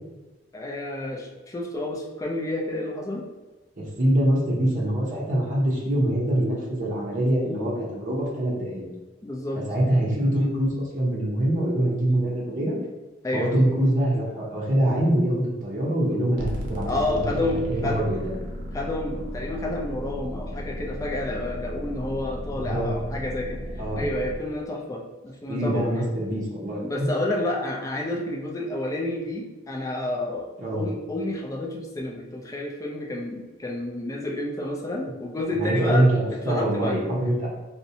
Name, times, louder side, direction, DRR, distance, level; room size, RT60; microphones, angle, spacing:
voice 1, 0.5-3.3 9.2-9.6 13.2-13.7 16.8-18.0 18.7-23.6 24.0-25.9 26.8-36.1 36.5-37.0, left 1 dB, 20° left, -1 dB, 0.3 m, -30 dB
voice 2, 3.8-8.8 9.7-12.8 13.3-17.4 17.7-18.4 22.6-22.9 23.8-24.1 25.5-27.1 30.6-30.8 35.5-37.5, right 1 dB, 45° right, -6 dB, 0.6 m, -24 dB
sound 1, 16.4-24.4, equal, 90° right, 0.5 m, -35 dB
2.5 x 2.1 x 2.7 m, 1.2 s
head